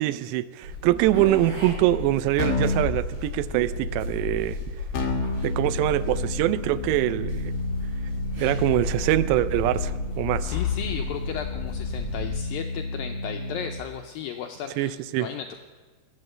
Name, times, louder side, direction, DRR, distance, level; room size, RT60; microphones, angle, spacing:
voice 1, 0.0-4.6 5.4-7.5 8.4-10.6 14.8-15.3, right 15 dB, 90° right, 15 dB, 2.8 m, -24 dB
sound 1, 0.6-12.4, left 3 dB, 60° right, 6.0 m, -33 dB
Keyboard (musical), 2.4-2.9 4.9-13.8, left 2 dB, 55° left, 1.6 m, -31 dB
voice 2, 10.4-15.6, left 9 dB, 85° left, 4 dB, 2.0 m, -35 dB
21.0 x 8.7 x 6.6 m, 1.4 s
omnidirectional pair, 4.9 m